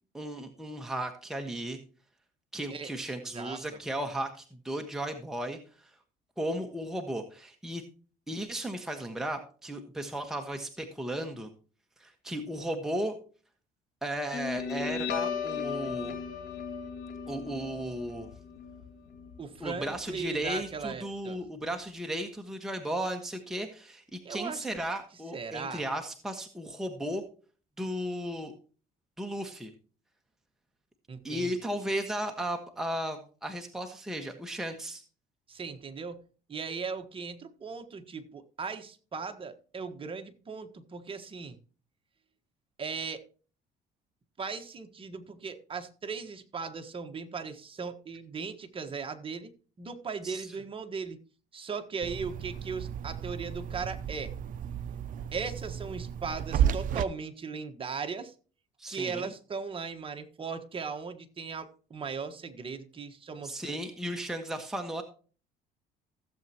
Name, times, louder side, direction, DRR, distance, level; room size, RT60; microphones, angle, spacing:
voice 1, 0.1-1.8 2.5-5.9 6.4-7.8 8.3-11.5 12.0-13.2 14.0-16.2 17.3-18.3 19.6-27.2 27.8-28.5 29.2-29.7 31.2-35.0 50.2-50.5 58.8-59.3 63.4-65.0, right 1 dB, 5° right, 3 dB, 1.4 m, -35 dB
voice 2, 3.3-3.6 19.4-21.4 24.2-24.7 25.3-25.8 31.1-31.5 35.5-36.2 36.5-41.6 42.8-43.2 44.4-49.5 49.8-51.2 51.5-54.3 55.3-58.3 58.9-63.8, right 5 dB, 30° right, 6 dB, 1.5 m, -38 dB
Guitar, 14.3-21.3, left 6 dB, 80° left, 2.3 m, -37 dB
sound 1, 52.0-57.0, right 9 dB, 55° right, 0.5 m, -33 dB
16.0 x 7.6 x 2.9 m, 0.39 s
cardioid pair, 110°, 17 cm